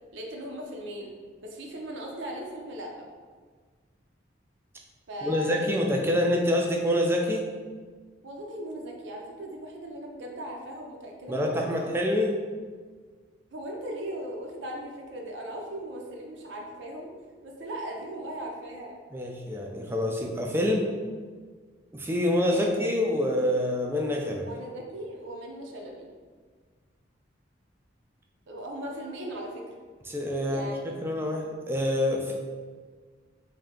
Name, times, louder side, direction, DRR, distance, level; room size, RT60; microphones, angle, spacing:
voice 1, 0.1-1.1 1.4-3.1 5.1-5.8 8.2-11.9 13.5-17.1 17.4-19.0 22.5-22.8 24.4-26.1 28.5-29.7 30.5-30.8 31.1-31.4, right 1 dB, 75° right, 0 dB, 0.6 m, -38 dB
voice 2, 5.2-7.4 11.3-12.3 19.1-20.9 21.9-24.5 30.1-30.7 31.0-32.3, left 1 dB, 10° right, 0 dB, 0.3 m, -26 dB
3.3 x 2.7 x 3.7 m, 1.5 s
head